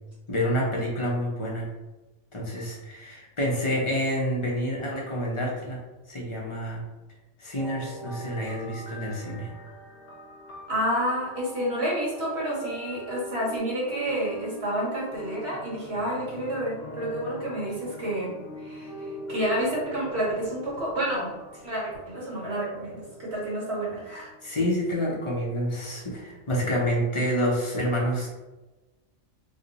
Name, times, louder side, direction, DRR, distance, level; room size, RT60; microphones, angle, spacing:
voice 1, 0.3-1.7 2.3-5.8 6.1-6.8 7.4-9.5 24.4-28.3, equal, 35° left, -4 dB, 0.6 m, -28 dB
sound 1, 7.6-26.5, equal, 60° left, 1.0 m, -42 dB
voice 2, 10.7-24.3, right 1 dB, 60° right, -6 dB, 1.7 m, -30 dB
3.1 x 2.1 x 3.9 m, 1.1 s
omnidirectional pair, 1.3 m